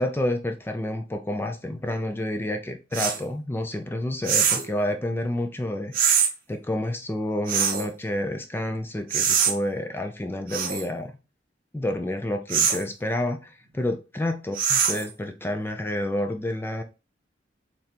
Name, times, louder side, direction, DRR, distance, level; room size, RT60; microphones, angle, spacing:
voice 1, 0.0-6.2 6.5-11.1 11.7-16.8, left 1 dB, 10° left, 0.4 m, -29 dB
sound 1, 2.9-3.2 4.2-4.7 5.9-6.3 7.5-7.9 9.1-9.5 10.5-10.9 12.5-12.8 14.5-15.1, right 7 dB, 50° right, 0.6 m, -23 dB
4.1 x 3.2 x 2.9 m
head